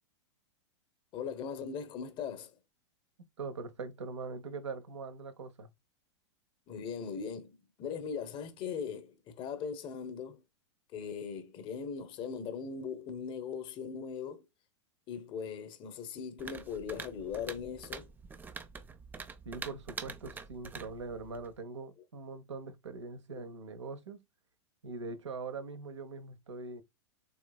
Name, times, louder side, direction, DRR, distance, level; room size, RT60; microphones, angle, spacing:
voice 1, 1.1-2.6 6.7-10.4 10.9-14.4 15.1-18.1, left 6 dB, 35° left, 1.1 m, -39 dB
voice 2, 3.4-5.7 19.4-24.2 24.8-26.8, right 4 dB, 75° right, 1.1 m, -42 dB
sound 1, 16.4-21.6, right 5 dB, 10° right, 0.5 m, -46 dB
6.9 x 3.0 x 2.3 m
figure-of-eight pair, 100°, 15 cm